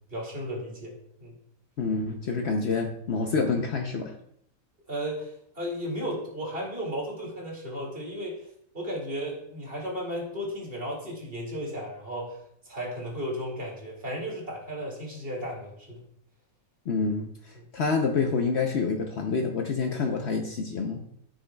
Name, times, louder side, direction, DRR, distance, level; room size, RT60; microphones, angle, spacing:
voice 1, 0.1-0.9 1.2-1.3 4.9-8.5 8.7-12.4 12.6-16.0 17.5-17.6, equal, 40° right, -2 dB, 2.5 m, -34 dB
voice 2, 1.8-4.1 16.9-21.0, left 4 dB, 55° left, 3 dB, 0.9 m, -27 dB
13.5 x 6.4 x 2.3 m, 0.69 s
omnidirectional pair, 1.5 m